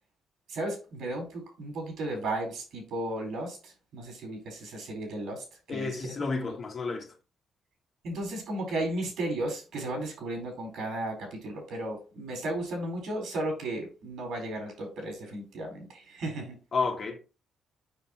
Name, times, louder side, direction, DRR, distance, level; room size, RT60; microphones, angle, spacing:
voice 1, 0.5-6.1 6.4-6.5 8.0-16.6, right 1 dB, 75° right, 4.3 m, -35 dB
voice 2, 5.7-7.1 16.7-17.2, left 4 dB, 45° left, 2.0 m, -31 dB
7.1 x 5.5 x 3.1 m
cardioid pair, 90°, 0 cm